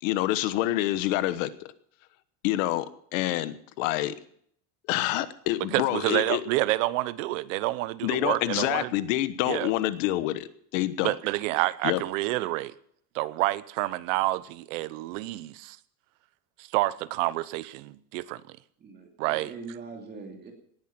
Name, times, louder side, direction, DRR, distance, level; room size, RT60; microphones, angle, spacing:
voice 1, 0.0-1.7 2.4-2.9 3.1-4.1 4.9-6.4 8.0-11.1 11.8-12.0, left 15 dB, 55° left, 1.2 m, -27 dB
voice 2, 5.7-8.9 9.5-9.7 11.0-12.7 13.1-15.8 16.6-18.6 19.2-19.5, right 18 dB, 55° right, 0.9 m, -28 dB
voice 3, 18.8-20.5, right 4 dB, 20° right, 2.8 m, -42 dB
18.5 x 10.5 x 6.0 m
supercardioid pair, 175°, 47 cm